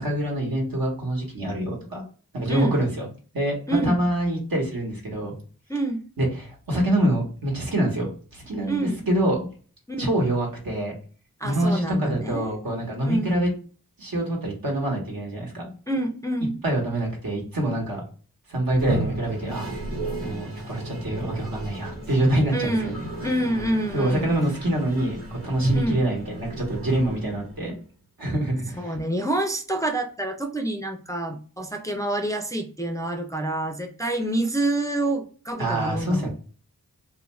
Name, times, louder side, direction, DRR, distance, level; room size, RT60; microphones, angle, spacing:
voice 1, 0.0-2.0 2.3-3.1 3.3-3.5 3.8-5.3 6.2-9.5 10.0-10.9 11.4-13.5 14.0-15.7 16.6-18.0 18.5-19.7 20.2-22.9 23.9-27.8 28.2-29.0 35.6-36.3, right 1 dB, 70° right, -1 dB, 1.1 m, -25 dB
voice 2, 3.7-4.1 5.7-6.0 8.7-9.1 9.9-10.2 11.4-12.6 13.0-13.4 15.9-16.6 22.5-24.3 25.7-26.0 28.7-36.3, right 1 dB, 10° left, 3 dB, 0.4 m, -27 dB
Toilet flush, 18.7-27.8, right 1 dB, 40° right, 0.9 m, -33 dB
2.4 x 2.2 x 3.0 m, 0.40 s
cardioid pair, 45°, 36 cm